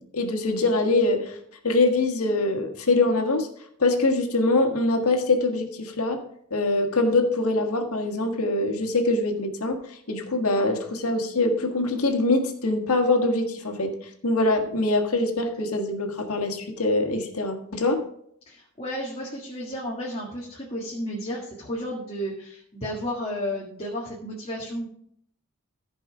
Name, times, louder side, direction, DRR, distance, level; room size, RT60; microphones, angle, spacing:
voice 1, 0.0-1.4 1.6-3.5 3.8-6.2 6.5-9.8 10.1-13.9 14.2-18.1, left 2 dB, 80° left, 5 dB, 1.7 m, -23 dB
voice 2, 18.5-24.9, equal, 25° left, -3 dB, 1.7 m, -32 dB
14.5 x 5.3 x 4.9 m, 0.68 s
head